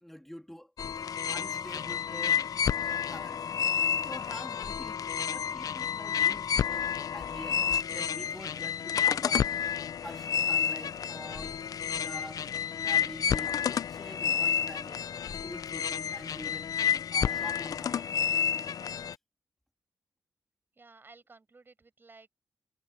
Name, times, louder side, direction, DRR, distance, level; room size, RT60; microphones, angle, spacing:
voice 1, 0.0-0.7 1.3-2.4 2.8-3.5 4.0-9.5 10.0-11.6 12.0-12.5 12.7-15.1 15.4-16.7 17.1-18.1, equal, 5° left, 2.0 m, -46 dB
sound 1, 0.8-19.1, left 8 dB, 60° left, 0.4 m, -30 dB
voice 2, 20.7-22.3, right 3 dB, 30° right, 6.4 m, -55 dB
wide cardioid pair, 135°, 7 cm